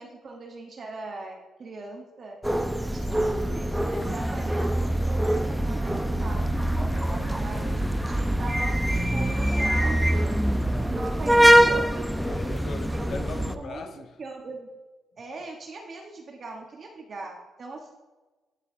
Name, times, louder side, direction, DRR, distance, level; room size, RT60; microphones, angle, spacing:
voice 1, 0.0-2.4 2.9-6.6 7.3-9.9 10.9-12.1 12.8-14.7 15.2-17.9, right 3 dB, 45° right, 1 dB, 0.9 m, -40 dB
sound 1, 2.4-13.6, equal, 5° right, 0.5 m, -24 dB
voice 2, 6.9-7.8 9.9-10.0 12.2-14.1, left 4 dB, 55° left, 7 dB, 0.8 m, -40 dB
9.9 x 8.1 x 2.6 m, 1.2 s
cardioid pair, 90°, 0 cm